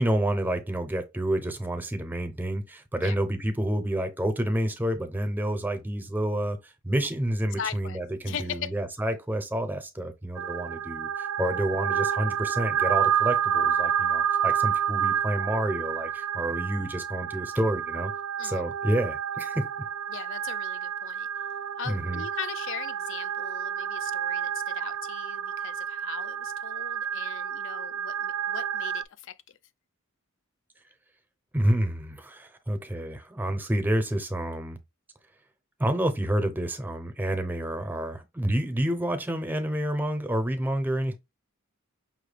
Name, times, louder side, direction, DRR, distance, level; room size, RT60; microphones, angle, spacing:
voice 1, 0.0-18.1 18.4-19.7 21.9-22.2 31.5-34.8 35.8-41.2, right 1 dB, 10° right, 0.5 m, -29 dB
voice 2, 7.6-8.7 18.4-18.6 20.1-21.3 21.8-29.3, left 8 dB, 60° left, 0.4 m, -39 dB
sound 1, 10.4-29.0, right 8 dB, 85° right, 0.4 m, -29 dB
5.5 x 2.2 x 3.3 m
head